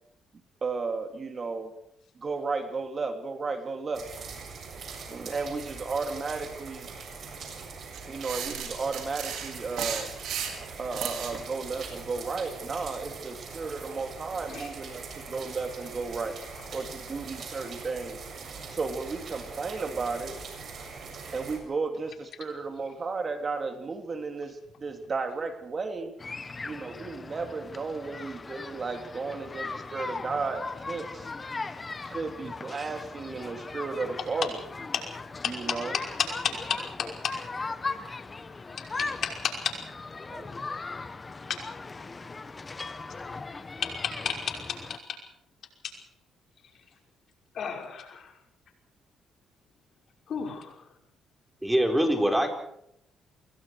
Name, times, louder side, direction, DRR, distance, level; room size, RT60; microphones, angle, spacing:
voice 1, 0.6-1.7 2.2-4.1 5.1-6.9 8.1-10.1 10.8-16.4 16.7-18.2 18.7-20.4 21.3-26.1 26.6-31.3 32.0-34.5 35.5-35.9 40.3-40.5, right 4 dB, 40° right, 6 dB, 2.9 m, -34 dB
sound 1, 3.9-21.6, right 5 dB, 55° right, 7.2 m, -42 dB
sound 2, 7.9-11.4, right 8 dB, 80° right, 5.4 m, -34 dB
sound 3, 26.2-45.0, left 3 dB, 30° left, 1.5 m, -38 dB
voice 2, 47.5-48.3 50.3-50.9, left 7 dB, 60° left, 2 dB, 5.6 m, -33 dB
voice 3, 51.6-52.5, equal, 5° right, 4 dB, 4.8 m, -23 dB
26.5 x 22.5 x 4.9 m, 0.75 s
cardioid pair, 90°, 0 cm